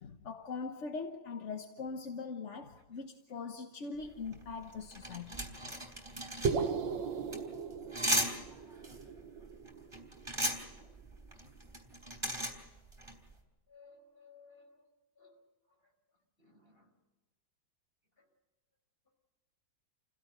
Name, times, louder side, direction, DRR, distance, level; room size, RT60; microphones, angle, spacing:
voice 1, 0.0-5.6 6.6-6.7, left 4 dB, 45° left, 1.2 m, -42 dB
sound 1, 4.0-13.3, equal, 15° right, 3.8 m, -37 dB
sound 2, 6.4-10.8, right 5 dB, 90° right, 1.7 m, -37 dB
voice 2, 13.7-14.8 15.2-15.4 16.4-16.9, left 4 dB, 30° left, 5.6 m, -59 dB
29.5 x 16.5 x 6.7 m
omnidirectional pair, 2.0 m